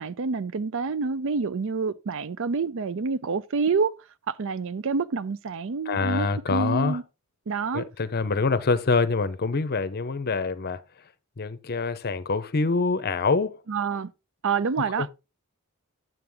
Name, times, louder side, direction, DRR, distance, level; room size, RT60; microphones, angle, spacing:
voice 1, 0.0-3.9 4.3-7.0 7.5-7.8 13.7-14.1 14.4-15.1, right 5 dB, 60° right, 0.5 m, -27 dB
voice 2, 5.9-7.0 7.7-10.8 11.4-13.6 15.0-15.1, left 4 dB, 45° left, 0.6 m, -25 dB
9.5 x 7.8 x 3.5 m
head